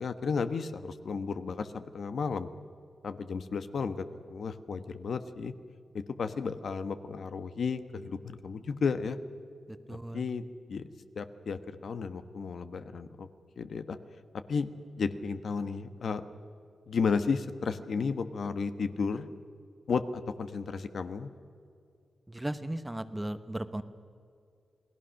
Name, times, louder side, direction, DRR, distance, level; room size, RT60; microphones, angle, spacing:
voice 1, 0.0-2.5 3.0-5.5 5.9-9.2 9.9-10.4 10.7-10.9 11.1-13.3 13.6-14.0 14.3-14.7 15.0-16.2 16.9-19.3 19.9-21.3, left 5 dB, 65° left, 10 dB, 1.1 m, -33 dB
voice 2, 9.9-10.2 22.3-23.8, right 1 dB, 10° right, 11 dB, 1.0 m, -36 dB
28.5 x 19.0 x 6.4 m, 2.4 s
wide cardioid pair, 115°, 0 cm